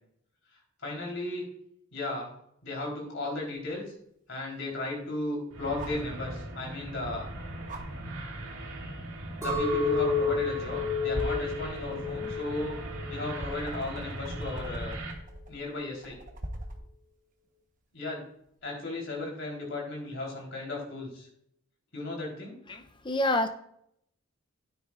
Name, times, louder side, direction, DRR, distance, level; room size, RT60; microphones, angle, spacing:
voice 1, 0.8-1.5 1.9-2.3 2.6-3.8 4.3-7.3 9.4-12.8 13.1-15.0 15.5-16.2 17.9-18.2 18.6-21.3 21.9-22.6, left 2 dB, 60° left, -1 dB, 3.8 m, -35 dB
sound 1, 3.6-3.7 5.8-6.1 7.7-7.8 9.0-9.1 9.4-9.6 10.5-10.8 11.1-16.8 18.5-18.6, right 1 dB, 40° right, 1.1 m, -41 dB
sound 2, 5.5-15.1, right 1 dB, 70° right, 2.1 m, -39 dB
Chink clink, 9.4-13.7 14.1-14.7, left 4 dB, 15° right, 2.6 m, -31 dB
voice 2, 22.7-23.5, left 1 dB, 20° left, 7 dB, 0.6 m, -27 dB
12.5 x 9.6 x 2.5 m, 0.71 s
head